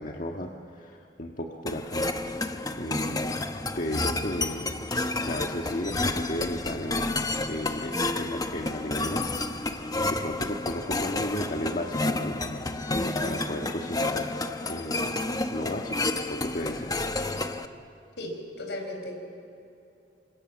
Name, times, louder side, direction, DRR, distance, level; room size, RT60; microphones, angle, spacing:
voice 1, 0.0-2.1 2.3-3.4 3.7-4.7 5.2-9.8 10.1-14.3 14.7-15.1 15.5-16.0 16.3-17.0, left 1 dB, 50° left, 1 dB, 1.6 m, -34 dB
sound 1, 1.7-17.7, left 2 dB, 20° left, 1.0 m, -30 dB
voice 2, 18.2-19.2, left 1 dB, 75° left, 4 dB, 4.9 m, -36 dB
27.5 x 26.5 x 7.4 m, 2.8 s
head